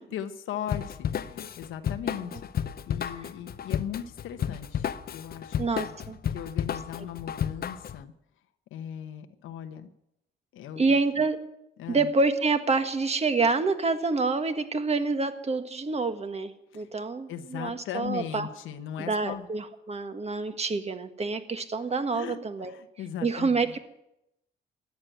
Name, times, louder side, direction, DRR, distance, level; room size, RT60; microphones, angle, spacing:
voice 1, 0.0-5.9 6.3-8.1 8.7-9.9 10.5-11.0 11.8-12.1 16.7-16.9 17.3-19.5 22.1-23.7, left 9 dB, 85° left, 8 dB, 1.1 m, -38 dB
Drum kit / Drum, 0.7-8.0, left 9 dB, 50° left, 0.7 m, -32 dB
voice 2, 5.6-6.2 10.8-11.4 11.9-18.5 19.0-22.8 23.2-23.8, right 3 dB, 30° right, 8 dB, 1.6 m, -27 dB
14.0 x 9.6 x 9.1 m, 0.84 s
cardioid pair, 90°, 20 cm